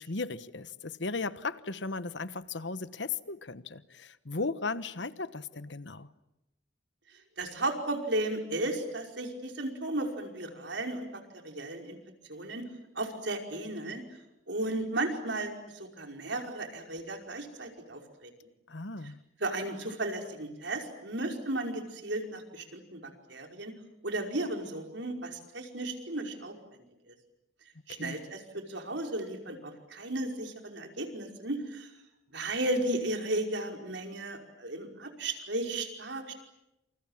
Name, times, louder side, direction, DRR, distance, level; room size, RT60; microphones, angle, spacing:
voice 1, 0.0-6.1 18.7-19.2 27.9-28.2, left 3 dB, 70° left, 14 dB, 1.3 m, -36 dB
voice 2, 7.4-12.0 12.3-12.6 13.0-14.0 14.5-18.3 19.4-23.7 24.0-26.5 27.1-27.2 27.9-31.9 32.3-36.3, right 2 dB, 70° right, 3 dB, 5.3 m, -34 dB
29.0 x 28.0 x 7.4 m, 0.91 s
head